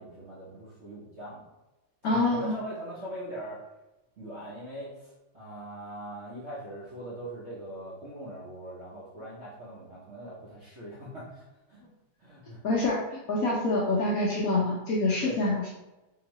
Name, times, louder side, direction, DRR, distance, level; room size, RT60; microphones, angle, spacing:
voice 1, 0.0-1.4 2.0-3.6 4.2-11.8 12.2-12.6 15.2-15.4, right 1 dB, 55° right, -7 dB, 0.8 m, -41 dB
voice 2, 2.0-2.6 12.6-15.7, left 2 dB, 70° left, -4 dB, 0.8 m, -26 dB
3.7 x 2.9 x 3.0 m, 1.0 s
omnidirectional pair, 2.1 m